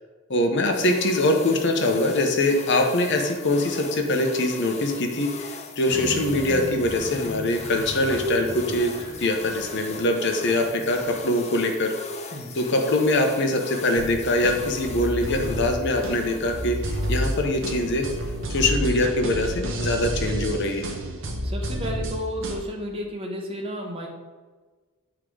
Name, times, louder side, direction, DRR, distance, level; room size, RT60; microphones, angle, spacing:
voice 1, 0.3-11.9 12.6-18.1 18.5-20.9, left 1 dB, 55° left, 4 dB, 0.9 m, -23 dB
sound 1, 0.7-18.7, left 5 dB, 30° left, 0.6 m, -40 dB
Train, 5.9-11.2, equal, 80° right, 1.7 m, -36 dB
sound 2, 14.0-22.6, equal, 60° right, 0.9 m, -30 dB
voice 2, 21.4-24.1, equal, 25° right, 0 dB, 1.2 m, -32 dB
8.2 x 3.7 x 4.8 m, 1.4 s
head